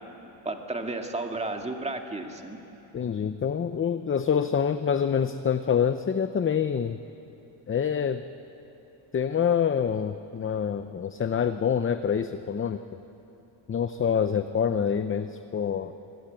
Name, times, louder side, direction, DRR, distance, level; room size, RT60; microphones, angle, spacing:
voice 1, 0.5-2.6, right 2 dB, 15° right, 3 dB, 2.1 m, -33 dB
voice 2, 2.9-7.0 7.7-8.2 9.1-12.8 13.7-15.9, left 7 dB, 25° left, 10 dB, 0.6 m, -26 dB
27.0 x 21.5 x 9.0 m, 2.9 s
cardioid pair, 135°, 48 cm